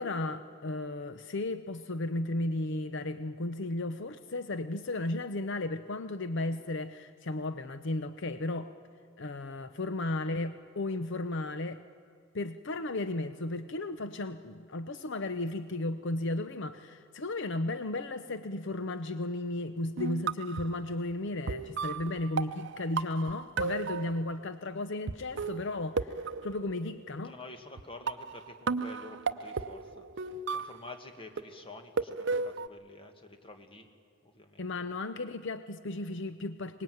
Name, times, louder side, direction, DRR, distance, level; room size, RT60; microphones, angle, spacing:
voice 1, 0.0-8.7 9.2-11.8 12.3-26.1 26.4-27.3 34.6-36.8, left 2 dB, 65° left, 11 dB, 0.7 m, -34 dB
sound 1, 20.0-20.8 21.5-24.4 25.1-25.2 25.4-27.1 27.8-27.9 28.1-31.0 31.4-32.7, right 4 dB, 60° right, 0.7 m, -34 dB
voice 2, 27.2-33.9 34.2-34.9, left 2 dB, 25° left, 6 dB, 1.8 m, -49 dB
23.5 x 19.5 x 9.3 m, 2.3 s
head